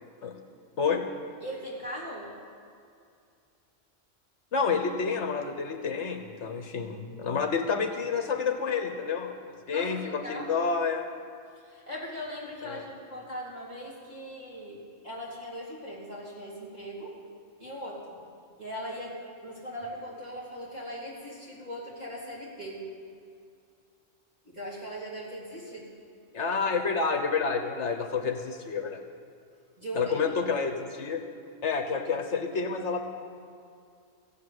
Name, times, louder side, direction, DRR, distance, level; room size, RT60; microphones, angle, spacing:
voice 1, 1.4-2.3 9.7-10.5 11.6-17.1 17.6-18.2 18.6-19.2 19.4-22.8 24.5-25.9 29.8-30.4, equal, 35° right, -7 dB, 3.5 m, -39 dB
voice 2, 4.5-9.4 9.7-11.1 12.6-12.8 26.3-29.0 29.9-31.2 31.6-33.0, left 5 dB, 65° left, 6 dB, 1.2 m, -29 dB
15.0 x 8.4 x 9.5 m, 2.4 s
omnidirectional pair, 1.3 m